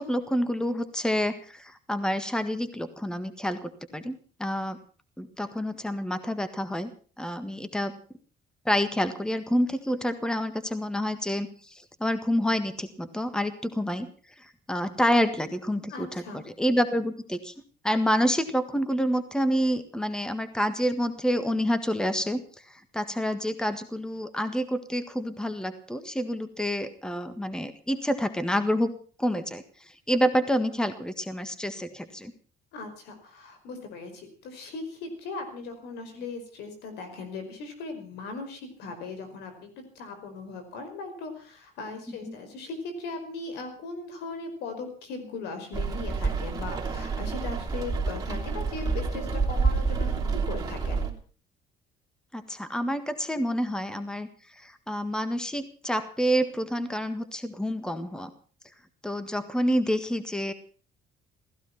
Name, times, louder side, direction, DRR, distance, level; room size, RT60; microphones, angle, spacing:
voice 1, 0.0-4.8 5.2-6.9 7.2-8.0 8.6-14.1 14.4-17.5 17.8-28.9 29.2-29.6 30.1-32.3 42.3-42.4 52.3-54.3 54.6-58.3 59.0-60.5, equal, 5° left, 11 dB, 1.6 m, -28 dB
voice 2, 15.9-16.4 32.7-39.7 40.0-51.1, left 3 dB, 85° left, 7 dB, 5.2 m, -38 dB
Rain, 45.7-51.1, right 4 dB, 20° right, 3.1 m, -28 dB
16.0 x 15.0 x 5.8 m, 0.41 s
cardioid pair, 110°, 17 cm